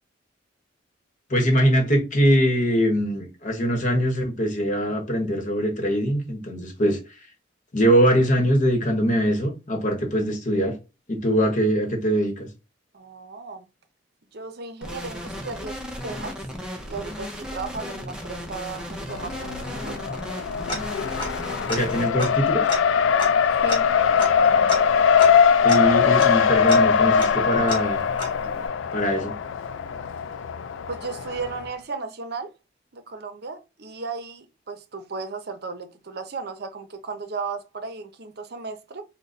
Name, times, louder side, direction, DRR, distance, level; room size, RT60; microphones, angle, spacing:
voice 1, 1.3-7.0 7.7-10.8 11.1-12.5 21.7-22.7 25.6-28.0 28.9-29.3, equal, 45° left, 1.1 m, -22 dB
voice 2, 12.9-13.7 14.3-16.3 16.9-20.2 23.6-23.9 30.9-32.5 32.9-39.0, right 4 dB, 55° right, 0.7 m, -35 dB
sound 1, 14.8-22.0, equal, 5° right, 0.7 m, -35 dB
Race car auto racing, 19.1-31.7, left 7 dB, 80° left, 0.4 m, -21 dB
Tick-tock, 20.7-21.4 21.7-21.8 22.2-28.7, left 1 dB, 25° left, 1.6 m, -34 dB
3.9 x 2.2 x 4.0 m
head